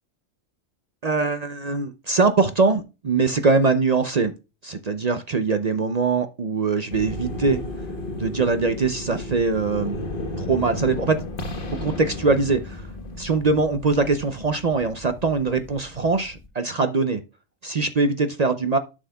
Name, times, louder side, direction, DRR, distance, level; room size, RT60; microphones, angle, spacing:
voice 1, 1.0-4.3 4.6-7.6 8.2-10.0 10.4-11.2 11.8-12.9 13.2-17.2 17.6-18.8, right 4 dB, 45° right, 9 dB, 0.5 m, -22 dB
sound 1, 6.9-16.5, left 1 dB, 45° left, 1.3 m, -34 dB
11.5 x 6.3 x 2.2 m, 0.28 s
omnidirectional pair, 1.3 m